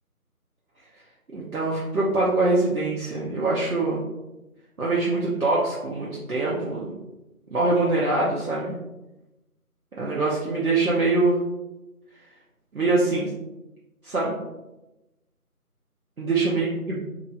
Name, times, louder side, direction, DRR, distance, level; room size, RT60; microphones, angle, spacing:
voice 1, 1.3-4.0 4.8-6.9 7.5-8.7 10.0-11.4 12.7-13.3 14.0-14.3 16.2-17.0, right 2 dB, 65° right, -6 dB, 0.7 m, -23 dB
2.9 x 2.5 x 2.5 m, 1.0 s
figure-of-eight pair, 175°, 45 cm